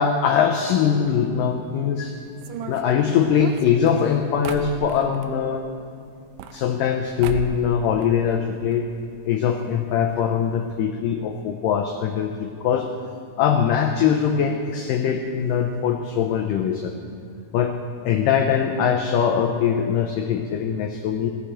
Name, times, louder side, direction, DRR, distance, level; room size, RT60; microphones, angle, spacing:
voice 1, 0.0-2.2 2.7-5.7 6.5-8.9 9.2-12.9 13.4-16.9 17.5-17.8 18.0-21.3, left 7 dB, 85° left, 5 dB, 1.9 m, -22 dB
sound 1, 2.4-5.3 6.2-7.0 7.2-7.7 8.0-8.8 9.0-9.1 9.3-9.4 10.1-10.2 10.5-10.7, right 6 dB, 85° right, 2.8 m, -35 dB
16.0 x 8.4 x 7.6 m, 2.4 s
omnidirectional pair, 4.7 m